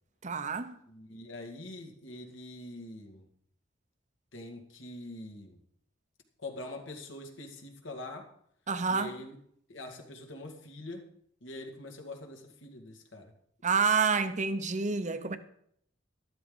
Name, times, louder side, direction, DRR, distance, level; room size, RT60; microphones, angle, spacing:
voice 1, 0.2-0.8 8.7-9.2 13.6-15.4, right 5 dB, 40° right, 0.9 m, -28 dB
voice 2, 0.9-3.3 4.3-5.6 6.4-8.3 8.9-9.4 9.7-11.1 11.4-13.3, left 2 dB, 70° left, 2.3 m, -44 dB
13.0 x 13.0 x 4.0 m
head